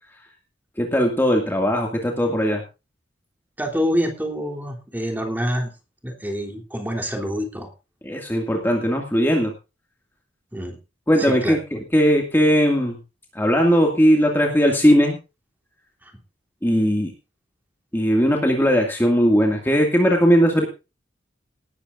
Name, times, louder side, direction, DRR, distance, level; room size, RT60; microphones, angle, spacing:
voice 1, 0.8-2.6 8.0-9.5 11.1-13.0 13.3-15.2 16.6-17.1 17.9-20.6, equal, 10° left, 0 dB, 2.3 m, -18 dB
voice 2, 3.6-5.7 6.0-7.7 10.5-10.8 11.2-11.6, equal, 10° right, 1 dB, 3.2 m, -26 dB
18.5 x 13.0 x 2.6 m, 0.29 s
head